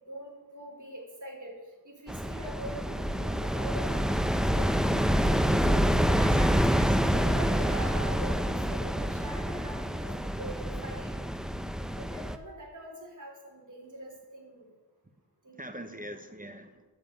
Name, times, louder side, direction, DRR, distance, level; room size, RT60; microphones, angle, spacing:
voice 1, 0.1-1.5 1.8-6.5 7.1-11.1 12.0-14.7 15.4-15.8, right 1 dB, 45° right, -1 dB, 4.1 m, -43 dB
sound 1, 2.1-12.3, equal, ahead, 0.6 m, -27 dB
voice 2, 6.2-7.1 15.5-16.8, right 1 dB, 20° right, 7 dB, 1.0 m, -42 dB
9.2 x 7.5 x 9.0 m, 1.2 s
wide cardioid pair, 75°, 41 cm